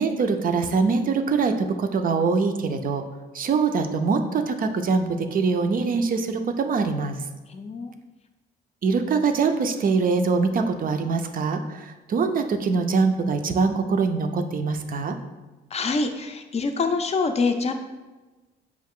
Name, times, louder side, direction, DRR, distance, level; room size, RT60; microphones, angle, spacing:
voice 1, 0.0-3.0 3.3-7.2 8.8-15.2, right 4 dB, 45° right, 7 dB, 0.4 m, -23 dB
voice 2, 7.5-7.9 15.7-17.7, left 4 dB, 30° left, 6 dB, 0.4 m, -25 dB
4.7 x 2.4 x 3.6 m, 1.2 s
cardioid pair, 90°, 20 cm